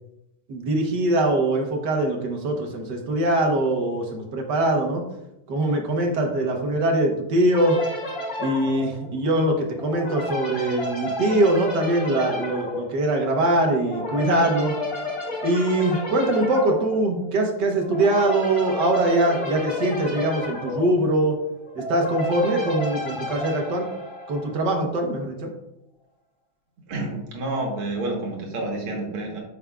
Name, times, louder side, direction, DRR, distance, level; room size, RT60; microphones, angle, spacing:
voice 1, 0.5-5.0 5.5-7.8 8.4-14.7 15.4-21.4 21.7-23.9 24.3-25.5, right 1 dB, 60° right, 2 dB, 1.7 m, -22 dB
sound 1, 7.5-24.7, left 1 dB, 50° left, 3.3 m, -32 dB
voice 2, 26.9-29.4, right 2 dB, 90° right, 0 dB, 2.4 m, -29 dB
8.9 x 6.1 x 2.4 m, 0.86 s
omnidirectional pair, 2.3 m